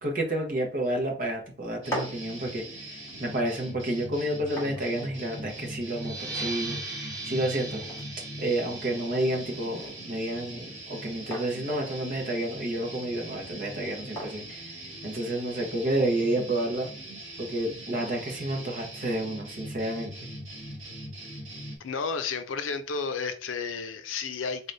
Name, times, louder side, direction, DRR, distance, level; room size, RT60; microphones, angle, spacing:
voice 1, 0.0-2.6 3.2-7.8 8.4-14.7 15.0-16.9 17.4-20.1, right 1 dB, 45° right, 1.1 m, -30 dB
sound 1, 1.8-21.8, right 1 dB, 75° right, 1.9 m, -41 dB
sound 2, 1.9-15.5, equal, 15° left, 1.5 m, -44 dB
sound 3, 5.8-11.1, right 3 dB, 20° right, 1.1 m, -40 dB
voice 2, 21.8-24.7, left 5 dB, 80° left, 0.5 m, -32 dB
4.0 x 3.3 x 2.6 m
head